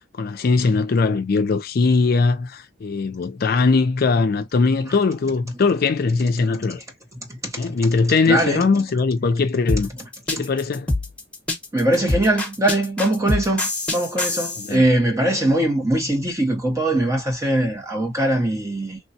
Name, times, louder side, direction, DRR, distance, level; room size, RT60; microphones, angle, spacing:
voice 1, 0.2-6.8 7.6-9.9 10.3-10.9 14.6-14.8, left 4 dB, 55° left, 0.4 m, -20 dB
voice 2, 7.3-7.7 8.3-8.7 10.4-10.5 11.7-19.0, right 1 dB, 15° right, 0.7 m, -21 dB
sound 1, 9.7-14.7, left 2 dB, 5° left, 1.0 m, -25 dB
3.3 x 2.2 x 2.6 m
head